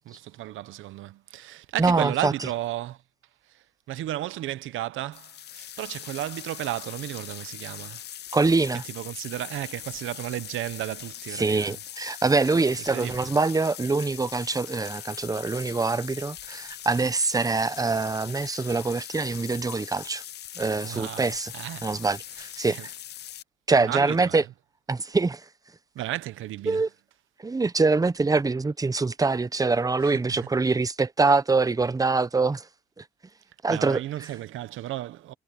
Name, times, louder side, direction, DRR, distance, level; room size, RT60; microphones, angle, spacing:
voice 1, 0.0-3.0 3.5-8.0 8.8-11.8 12.9-13.3 20.8-21.9 22.4-22.9 23.7-24.4 25.9-26.9 30.0-30.5 33.7-35.3, right 14 dB, 80° right, 0.9 m, -34 dB
voice 2, 1.8-2.3 8.3-8.8 11.3-20.2 20.6-21.5 21.8-22.9 23.7-24.4 24.9-25.4 26.7-26.9 27.4-32.7 33.0-33.1 33.6-34.0, right 3 dB, 20° right, 0.8 m, -24 dB
sound 1, 5.1-23.4, left 11 dB, 60° left, 0.6 m, -41 dB
cardioid pair, 90°, 20 cm